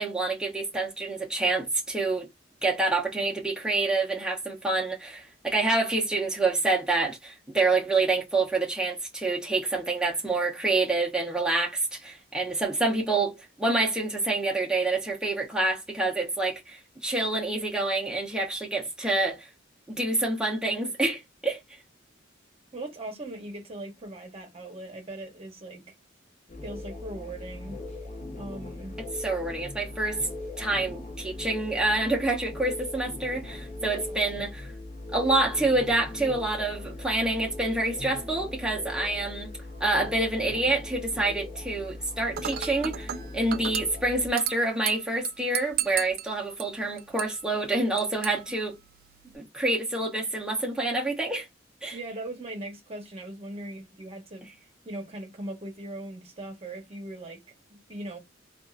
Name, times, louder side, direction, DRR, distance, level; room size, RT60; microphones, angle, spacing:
voice 1, 0.0-2.3 2.6-19.5 19.9-21.6 29.2-30.2 30.6-34.7 35.1-39.5 39.8-48.7 49.3-51.5 51.8-52.0, right 2 dB, 5° right, 0.8 m, -27 dB
voice 2, 22.7-25.8 26.6-27.8 28.3-29.0 33.8-34.5 51.9-54.5 54.8-57.4 57.7-58.2, right 1 dB, 30° right, 1.0 m, -39 dB
sound 1, 26.5-44.3, left 2 dB, 35° left, 0.7 m, -39 dB
Dishes pots and pans / Glass, 42.4-49.4, right 11 dB, 50° right, 0.3 m, -36 dB
3.5 x 2.5 x 2.4 m
head